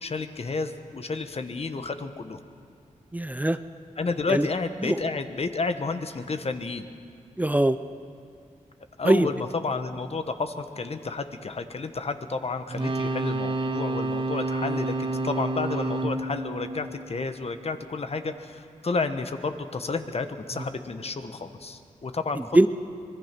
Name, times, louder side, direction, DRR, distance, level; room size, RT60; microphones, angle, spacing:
voice 1, 0.0-2.4 4.0-6.8 9.0-22.7, left 4 dB, 50° left, 8 dB, 1.2 m, -31 dB
voice 2, 3.1-3.6 4.3-4.5 4.8-5.0 7.4-7.8 9.0-9.3 22.5-22.7, right 1 dB, 10° right, 11 dB, 0.6 m, -21 dB
sound 1, 12.7-17.7 20.5-20.6, right 2 dB, 40° right, 1.8 m, -30 dB
24.5 x 20.5 x 6.0 m, 2.4 s
wide cardioid pair, 80°, 13 cm